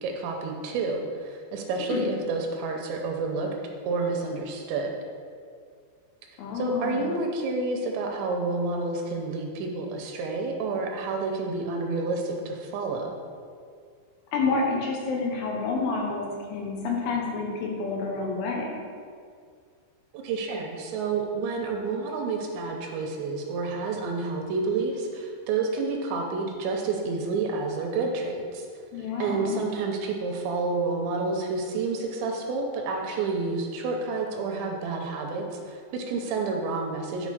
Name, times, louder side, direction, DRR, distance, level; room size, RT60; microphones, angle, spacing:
voice 1, 0.0-3.5 3.9-4.9 6.5-13.1 20.1-28.7 29.2-37.3, right 3 dB, 85° right, 2 dB, 2.8 m, -29 dB
voice 2, 6.4-7.1 14.3-18.8 28.9-29.6, left 4 dB, 90° left, -1 dB, 3.7 m, -29 dB
10.5 x 4.0 x 4.9 m, 2.2 s
omnidirectional pair, 5.4 m